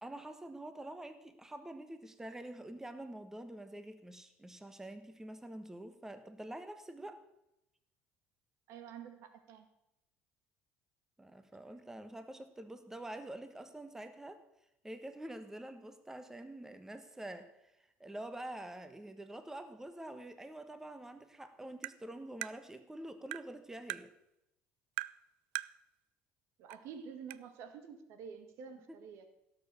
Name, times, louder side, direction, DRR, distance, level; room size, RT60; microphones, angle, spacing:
voice 1, 0.0-7.2 11.2-14.4 14.8-17.7 18.0-24.1 28.9-29.0, right 1 dB, 10° right, 9 dB, 1.2 m, -46 dB
voice 2, 8.7-9.7 26.6-29.3, right 6 dB, 70° right, 8 dB, 1.9 m, -49 dB
Tap, 21.8-22.0 22.4-22.6 23.3-23.5 23.9-24.0 25.0-25.2 25.6-25.7 26.7-26.8 27.3-27.4, right 20 dB, 90° right, 0.4 m, -39 dB
17.0 x 6.8 x 6.9 m, 0.86 s
supercardioid pair, 90°, 5 cm